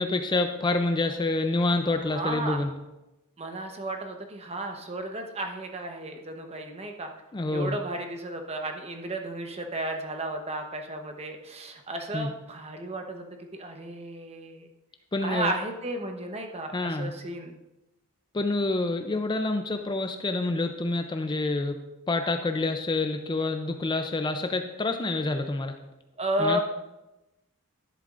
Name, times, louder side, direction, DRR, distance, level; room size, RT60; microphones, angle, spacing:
voice 1, 0.0-2.7 7.3-7.8 12.1-12.3 15.1-15.5 16.7-17.1 18.3-21.8 22.1-25.8 26.4-26.6, left 2 dB, 20° left, 6 dB, 0.5 m, -27 dB
voice 2, 2.1-2.6 3.4-7.1 7.5-13.3 13.5-14.7 15.2-17.6 26.2-26.6, right 1 dB, 30° right, 4 dB, 1.0 m, -33 dB
11.0 x 10.5 x 2.5 m, 0.98 s
head